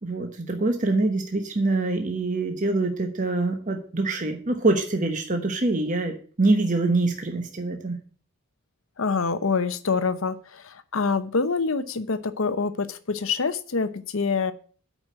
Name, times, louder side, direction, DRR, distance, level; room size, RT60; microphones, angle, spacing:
voice 1, 0.0-8.0, right 2 dB, 35° right, 4 dB, 1.0 m, -25 dB
voice 2, 9.0-14.5, left 4 dB, 65° left, 13 dB, 0.7 m, -26 dB
8.8 x 5.1 x 7.5 m, 0.43 s
head